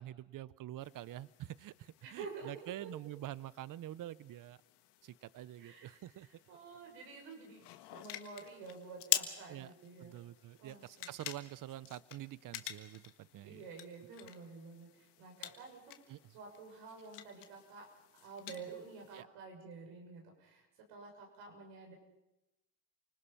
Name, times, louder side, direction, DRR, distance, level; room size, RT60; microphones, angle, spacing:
voice 1, 0.0-4.6 5.0-6.3 9.5-9.7 10.0-13.6 16.1-16.2 19.1-19.3, right 13 dB, 50° right, 20 dB, 0.8 m, -46 dB
sound 1, 0.8-19.2, left 14 dB, 80° left, 1.7 m, -46 dB
voice 2, 2.0-2.9 5.6-7.6 7.9-10.1 10.6-11.1 13.4-15.9 16.3-17.8 18.1-21.9, right 4 dB, 85° right, 2 dB, 6.6 m, -50 dB
29.0 x 19.5 x 5.7 m, 0.92 s
supercardioid pair, 85°, 40 cm